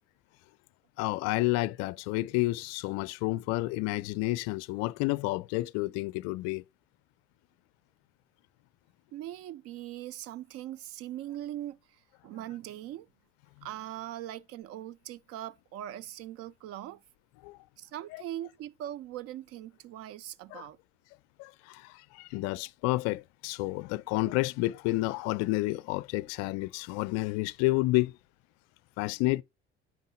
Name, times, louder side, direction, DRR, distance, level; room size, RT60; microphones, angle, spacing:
voice 1, 1.0-6.6 17.4-17.6 18.1-18.2 20.5-20.7 21.4-28.2 29.0-29.4, left 20 dB, 50° left, 0.5 m, -30 dB
voice 2, 9.1-13.1 13.6-17.0 17.8-20.8, right 13 dB, 45° right, 0.6 m, -41 dB
9.3 x 9.0 x 2.3 m
figure-of-eight pair, 60°, 34 cm